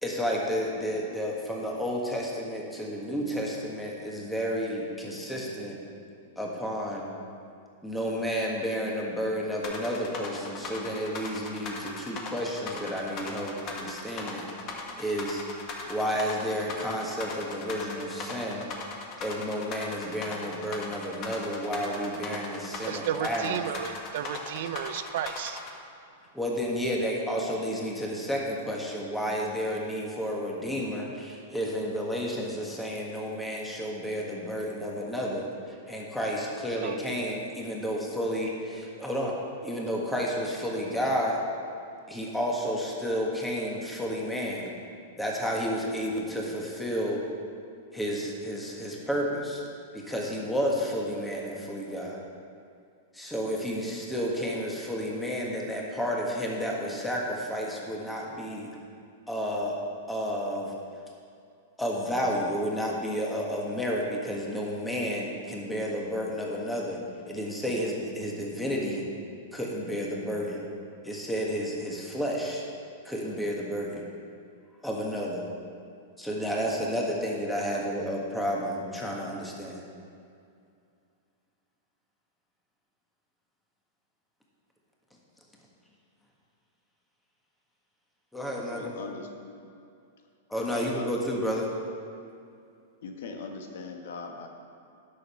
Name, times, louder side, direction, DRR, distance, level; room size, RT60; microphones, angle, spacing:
voice 1, 0.0-5.8 6.3-7.1 7.8-14.5 15.0-15.4 15.9-18.6 19.2-23.6 26.3-39.4 39.6-41.4 42.1-44.7 45.2-47.2 47.9-49.6 49.9-52.2 53.1-58.7 59.3-59.8 60.1-60.7 61.8-67.0 67.3-69.0 69.5-70.7 71.0-72.6 73.0-74.1 74.8-75.5 76.2-79.8 88.3-88.9 90.5-91.7, equal, 5° left, -3 dB, 1.6 m, -31 dB
sound 1, 9.6-25.7, left 4 dB, 35° left, 1.5 m, -38 dB
voice 2, 22.8-25.6 36.8-37.0, right 10 dB, 60° right, 11 dB, 0.5 m, -33 dB
voice 3, 88.7-89.7 90.7-91.2 93.0-94.5, left 4 dB, 70° left, 3 dB, 1.3 m, -40 dB
10.5 x 6.7 x 5.7 m, 2.4 s
hypercardioid pair, 145°, 0 cm